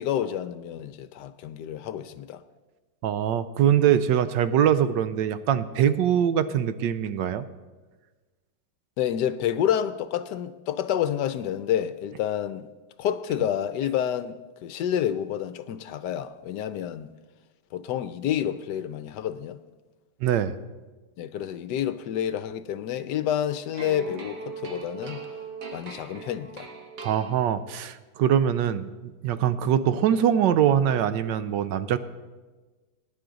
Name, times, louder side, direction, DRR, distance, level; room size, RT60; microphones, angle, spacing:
voice 1, 0.0-2.4 9.0-12.7 13.0-17.1 17.7-19.6 21.2-25.3 25.7-26.7, left 10 dB, 75° left, 1.1 m, -29 dB
voice 2, 3.0-7.5 20.2-20.5 27.0-32.0, right 9 dB, 75° right, 1.2 m, -23 dB
sound 1, 23.7-27.8, right 5 dB, 50° right, 1.5 m, -40 dB
20.0 x 10.0 x 3.9 m
omnidirectional pair, 2.0 m